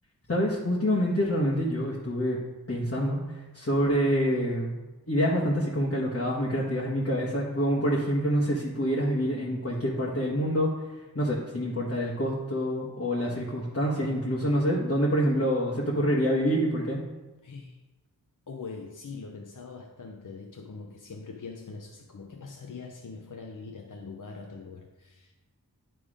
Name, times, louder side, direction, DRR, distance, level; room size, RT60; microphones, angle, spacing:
voice 1, 0.3-2.4 2.7-4.8 5.1-17.0, equal, 35° left, -6 dB, 1.4 m, -27 dB
voice 2, 17.4-17.8 18.5-25.3, left 4 dB, 55° left, 1 dB, 0.8 m, -42 dB
10.0 x 3.5 x 4.9 m, 1.1 s
wide cardioid pair, 50°, 38 cm